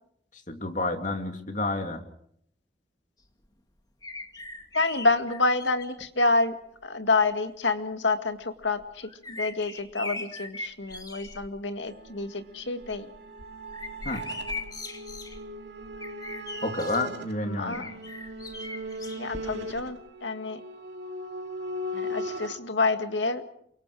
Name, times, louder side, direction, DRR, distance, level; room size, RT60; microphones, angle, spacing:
voice 1, 0.5-2.0 14.0-14.2 16.6-17.9, left 2 dB, 45° left, 5 dB, 2.9 m, -30 dB
sound 1, 4.0-6.1 6.9-7.0 8.6-11.5 11.9-12.3 12.7-17.0 17.7-19.8 20.1-20.2, left 3 dB, 20° left, 2.1 m, -40 dB
voice 2, 4.7-6.5 6.8-13.1 17.5-17.8 19.2-20.6 21.9-23.4, left 3 dB, 85° left, 7 dB, 2.1 m, -28 dB
sound 2, 11.9-22.6, equal, 70° right, 2.6 m, -38 dB
28.0 x 24.0 x 5.0 m, 0.69 s
head